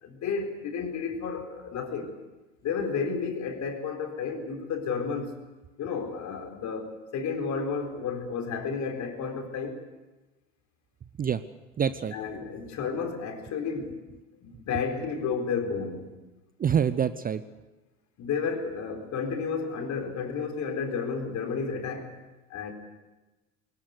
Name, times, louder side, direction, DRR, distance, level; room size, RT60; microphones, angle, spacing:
voice 1, 0.0-2.1 2.6-5.4 5.8-9.8 12.1-13.9 14.4-16.1 18.2-22.1 22.5-22.7, left 5 dB, 45° left, 5 dB, 4.0 m, -32 dB
voice 2, 11.8-12.1 16.6-17.4, right 8 dB, 20° right, 14 dB, 0.7 m, -26 dB
22.0 x 19.0 x 8.1 m, 1.1 s
hypercardioid pair, 75°, 40 cm